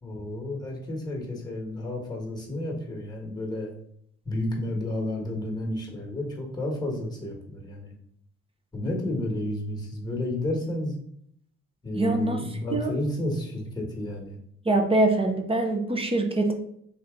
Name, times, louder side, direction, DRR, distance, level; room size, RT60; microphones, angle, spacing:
voice 1, 0.0-3.7 4.2-7.9 8.7-10.9 11.8-14.4, left 1 dB, 15° left, -1 dB, 1.4 m, -31 dB
voice 2, 11.9-12.4 12.7-12.9 14.6-16.5, right 2 dB, 20° right, 3 dB, 0.7 m, -23 dB
3.4 x 2.8 x 3.7 m, 0.69 s
cardioid pair, 90°, 30 cm